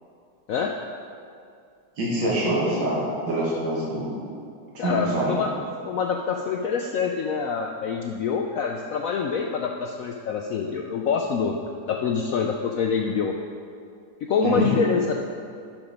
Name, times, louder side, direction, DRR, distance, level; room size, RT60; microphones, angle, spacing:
voice 1, 2.0-4.1 4.8-5.4 14.4-14.7, right 1 dB, 85° right, -6 dB, 2.4 m, -25 dB
voice 2, 4.8-5.5 5.9-11.6 11.9-13.3 14.2-15.1, left 6 dB, 75° left, 2 dB, 0.7 m, -26 dB
12.0 x 5.0 x 5.1 m, 2.4 s
omnidirectional pair, 2.0 m